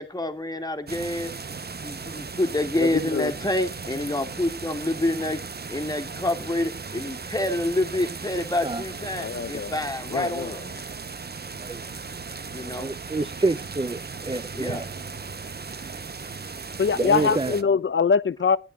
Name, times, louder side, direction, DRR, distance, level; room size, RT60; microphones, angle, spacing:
voice 1, 0.0-1.3 1.8-5.4 5.7-10.6 12.5-12.9 14.5-14.9 17.2-17.3, left 1 dB, 20° left, 2.2 m, -27 dB
sound 1, 0.9-17.6, right 4 dB, 50° right, 0.9 m, -37 dB
voice 2, 2.8-3.3 9.1-9.7 10.1-10.6 16.8-18.6, left 6 dB, 70° left, 0.7 m, -23 dB
voice 3, 12.7-14.8 17.0-17.5, right 3 dB, 25° right, 0.6 m, -27 dB
17.5 x 10.5 x 2.4 m
wide cardioid pair, 65°, 21 cm